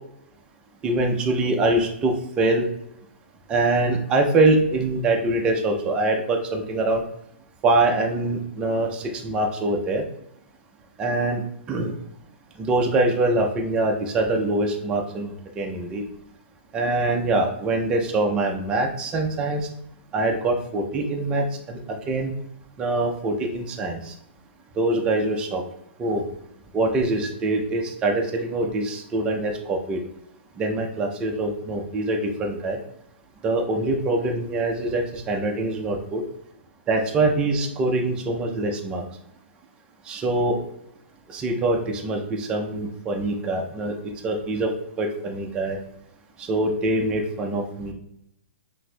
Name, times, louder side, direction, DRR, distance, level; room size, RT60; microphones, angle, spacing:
voice 1, 0.8-2.7 3.5-7.0 7.6-10.0 11.0-11.4 11.7-11.9 12.6-16.0 16.7-19.6 20.1-21.8 22.1-22.3 22.8-24.1 24.8-25.6 26.0-26.2 26.7-30.0 30.6-32.8 33.4-36.2 36.9-39.0 40.1-40.6 41.3-44.7 45.0-45.8 46.4-47.9, right 2 dB, 15° right, 1 dB, 0.4 m, -24 dB
4.0 x 2.5 x 2.2 m, 0.76 s
hypercardioid pair, 160°, 6 cm